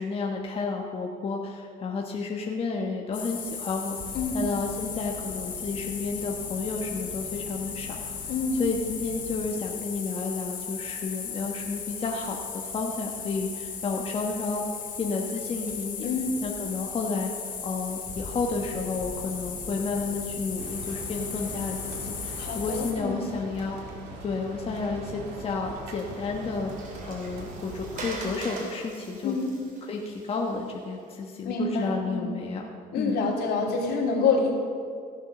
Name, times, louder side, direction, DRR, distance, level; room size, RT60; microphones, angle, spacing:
voice 1, 0.0-8.3 8.6-14.6 15.0-16.1 16.4-23.9 24.2-26.7 27.1-29.4 29.8-32.7 33.0-33.2, left 4 dB, 35° left, 0 dB, 1.2 m, -31 dB
sound 1, 3.1-22.9, left 6 dB, 50° left, 3.0 m, -36 dB
voice 2, 8.3-8.6 16.0-16.4 22.4-23.2 29.2-29.5 31.4-32.3 32.9-34.5, left 4 dB, 75° left, -2 dB, 2.8 m, -27 dB
sound 2, 20.6-28.2, right 3 dB, 85° right, 2.1 m, -41 dB
Water, 25.8-31.1, right 2 dB, 50° right, 3.2 m, -42 dB
15.5 x 7.3 x 6.1 m, 2.3 s
cardioid pair, 110°, 17 cm